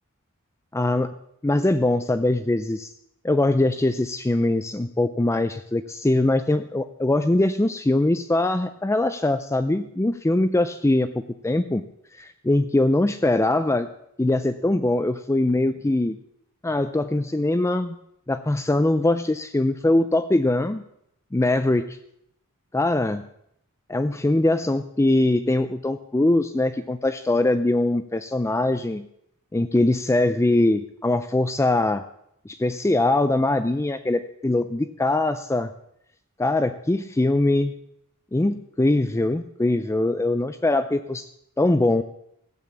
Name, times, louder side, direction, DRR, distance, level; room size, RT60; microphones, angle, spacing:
voice 1, 0.7-1.1 1.4-2.9 3.2-11.9 12.1-13.9 14.2-16.2 16.6-18.0 18.3-20.8 21.3-22.0 22.7-23.2 23.9-29.1 29.5-32.0 32.5-35.7 36.4-37.7 38.3-41.3 41.6-42.0, left 2 dB, 15° left, 10 dB, 0.4 m, -22 dB
16.0 x 8.7 x 7.3 m, 0.75 s
head